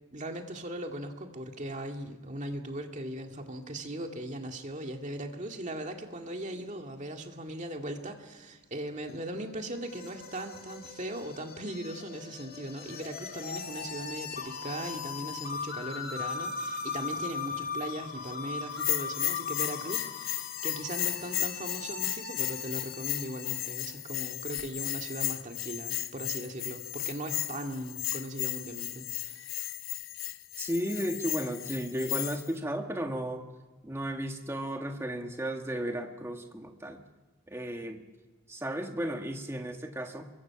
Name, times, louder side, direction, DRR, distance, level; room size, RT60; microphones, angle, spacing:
voice 1, 0.1-29.6, right 1 dB, 35° right, 3 dB, 2.2 m, -39 dB
sound 1, 9.1-23.7, left 5 dB, 45° left, 2.4 m, -39 dB
Bell, 18.7-32.5, left 15 dB, 80° left, 0.9 m, -35 dB
voice 2, 30.6-33.5 33.8-37.0 37.5-38.0 38.5-40.3, equal, 10° right, 4 dB, 1.6 m, -34 dB
28.0 x 23.0 x 6.0 m, 1.3 s
head